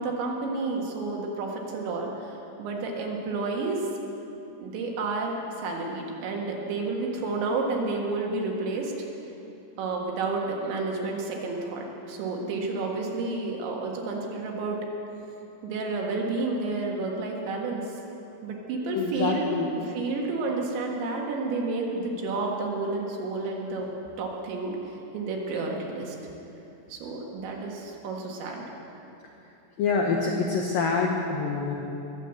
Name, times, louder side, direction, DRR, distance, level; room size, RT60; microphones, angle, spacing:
voice 1, 0.0-2.1 2.6-3.8 4.6-8.9 9.8-14.8 15.6-17.8 18.4-19.5 19.9-23.9 24.2-24.8 25.1-26.2 26.9-28.7, right 3 dB, 70° right, -1 dB, 3.8 m, -30 dB
voice 2, 18.9-19.7 29.8-31.7, left 4 dB, 85° left, 0 dB, 2.0 m, -26 dB
22.0 x 7.4 x 7.9 m, 2.9 s
omnidirectional pair, 5.6 m